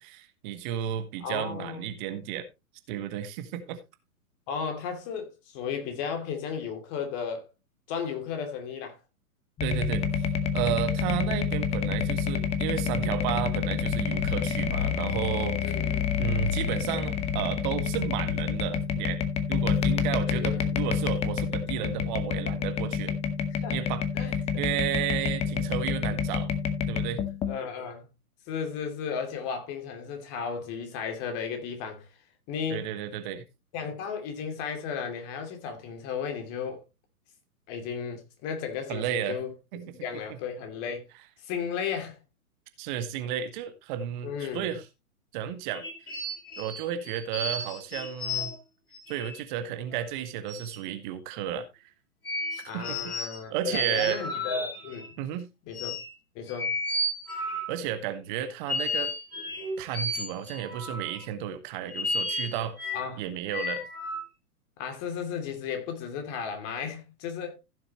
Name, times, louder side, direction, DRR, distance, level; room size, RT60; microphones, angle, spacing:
voice 1, 0.0-2.5 2.9-3.8 9.6-10.2 10.5-15.6 16.2-19.2 19.5-23.1 23.7-24.0 24.6-26.5 26.9-27.2 32.7-33.4 38.9-39.4 39.7-39.9 42.8-44.8 45.3-45.8 46.6-48.5 49.1-51.7 52.5-53.1 53.5-54.2 55.2-55.5 57.4-59.1 59.8-62.8 63.2-63.8, right 10 dB, 30° right, 1.3 m, -32 dB
voice 2, 1.2-1.8 4.5-7.4 7.9-9.0 15.6-16.1 20.3-20.8 23.6-23.8 24.1-24.6 27.4-28.1 28.5-32.1 32.5-32.9 33.7-36.8 37.7-41.1 41.4-42.2 44.2-44.7 52.7-55.1 55.7-56.0 56.3-56.8 62.9-63.2 64.8-67.5, left 6 dB, 30° left, 2.8 m, -34 dB
sound 1, 9.6-27.6, left 7 dB, 15° left, 0.9 m, -28 dB
sound 2, 45.7-48.6 48.9-49.4 49.9-50.0 50.5-50.7 52.3-53.4 53.7-55.1 55.7-56.1 56.5-57.8 58.7-61.3 61.9-63.1 63.5-64.2, left 1 dB, 70° left, 7.4 m, -33 dB
15.5 x 6.8 x 3.0 m
figure-of-eight pair, 120°, 45 cm